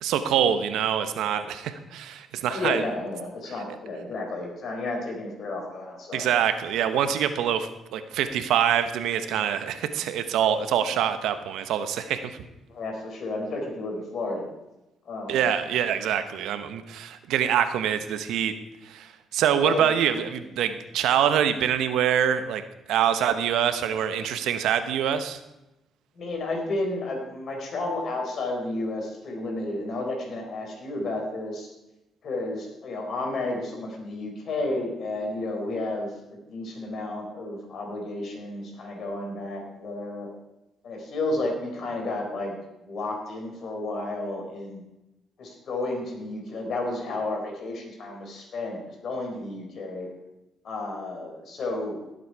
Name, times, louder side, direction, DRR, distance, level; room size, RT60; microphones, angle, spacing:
voice 1, 0.0-2.8 6.1-12.4 15.3-18.5 18.8-22.6 22.9-25.4, right 9 dB, 85° right, 10 dB, 1.0 m, -25 dB
voice 2, 2.5-6.3 12.7-14.5 15.1-15.5 19.6-19.9 26.2-31.7 32.2-40.3 40.8-42.5 42.8-44.8 45.4-50.1 50.6-52.0, left 2 dB, 60° left, 2 dB, 4.1 m, -32 dB
17.0 x 7.9 x 4.7 m, 0.95 s
cardioid pair, 90°, 0 cm